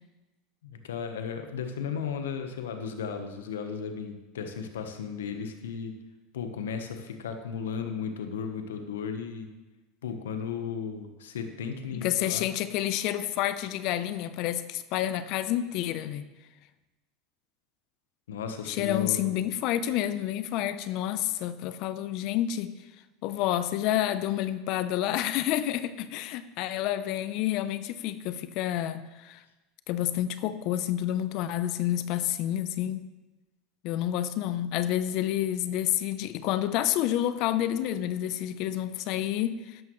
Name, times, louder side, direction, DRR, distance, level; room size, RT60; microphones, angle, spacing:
voice 1, 0.6-5.9 6.3-9.5 10.0-12.5 18.3-19.4, left 6 dB, 90° left, 6 dB, 1.1 m, -35 dB
voice 2, 11.9-16.3 18.7-22.7 23.2-29.4 29.9-33.0 33.8-39.8, left 12 dB, 60° left, 13 dB, 0.7 m, -29 dB
12.5 x 11.0 x 3.2 m, 1.1 s
hypercardioid pair, 100°, 0 cm